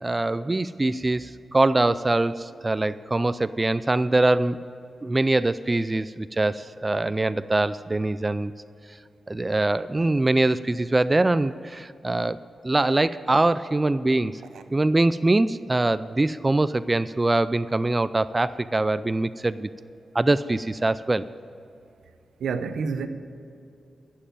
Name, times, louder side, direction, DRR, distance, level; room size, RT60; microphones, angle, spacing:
voice 1, 0.0-4.6 5.0-8.5 9.3-12.4 12.6-14.4 14.7-19.7 20.1-21.3, right 2 dB, 25° right, 14 dB, 0.4 m, -23 dB
voice 2, 22.4-23.1, right 5 dB, 85° right, 10 dB, 0.7 m, -29 dB
11.0 x 7.4 x 9.2 m, 2.6 s
cardioid pair, 55°, 0 cm